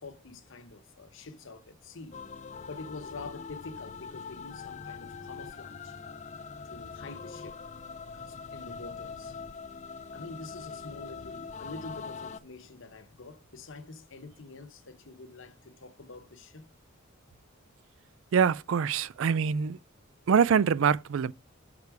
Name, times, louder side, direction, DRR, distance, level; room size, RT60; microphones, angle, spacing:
voice 1, 0.0-2.2 2.7-6.0 6.6-7.6 8.1-9.4 10.1-16.7, left 3 dB, 60° left, 1.0 m, -46 dB
sound 1, 2.1-12.4, left 5 dB, 35° left, 0.4 m, -42 dB
voice 2, 18.3-19.8 20.3-21.3, right 7 dB, 65° right, 0.4 m, -24 dB
6.6 x 4.9 x 4.7 m
head